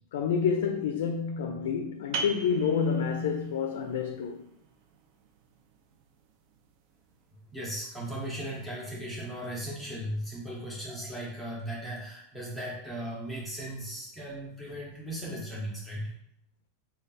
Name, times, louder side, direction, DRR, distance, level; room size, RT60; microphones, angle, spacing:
voice 1, 0.1-4.5, left 6 dB, 75° left, 0.3 m, -28 dB
sound 1, 2.1-7.5, right 3 dB, 45° right, 0.4 m, -42 dB
voice 2, 7.5-16.1, right 1 dB, 5° left, 0.7 m, -37 dB
3.2 x 2.3 x 4.0 m
supercardioid pair, 160°, 0 cm